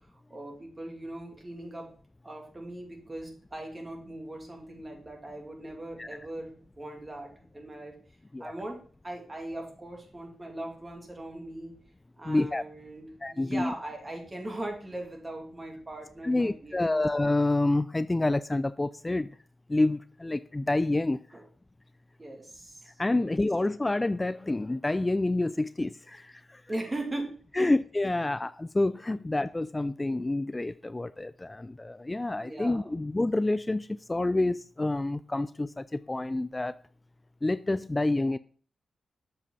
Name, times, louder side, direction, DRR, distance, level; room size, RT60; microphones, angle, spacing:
voice 1, 0.3-1.9 2.2-7.9 8.4-8.8 9.0-11.7 12.2-17.0 21.3-21.4 22.2-23.3 26.7-27.7 29.1-29.2 32.4-33.1, right 1 dB, 30° right, 2.5 m, -40 dB
voice 2, 12.3-12.6 13.2-13.7 16.2-19.3 19.7-21.2 23.0-26.6 27.6-36.8 37.4-38.4, left 2 dB, 25° left, 0.3 m, -28 dB
7.4 x 5.5 x 4.0 m
supercardioid pair, 40°, 0 cm